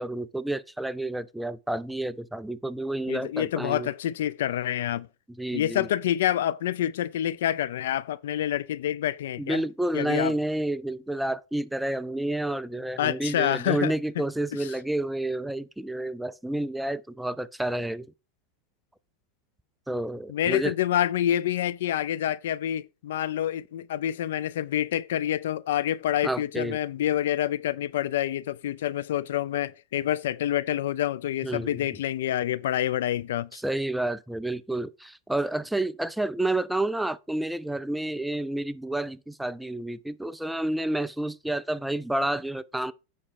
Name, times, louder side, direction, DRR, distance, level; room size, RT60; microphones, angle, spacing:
voice 1, 0.0-3.9 5.4-5.9 9.4-18.1 19.9-20.7 26.2-26.8 31.4-31.8 33.5-42.9, right 1 dB, 5° right, 0.3 m, -30 dB
voice 2, 3.1-5.1 5.5-9.6 9.9-10.3 13.0-13.9 20.3-33.5, left 11 dB, 85° left, 0.5 m, -27 dB
8.7 x 5.5 x 4.8 m
supercardioid pair, 155°, 0 cm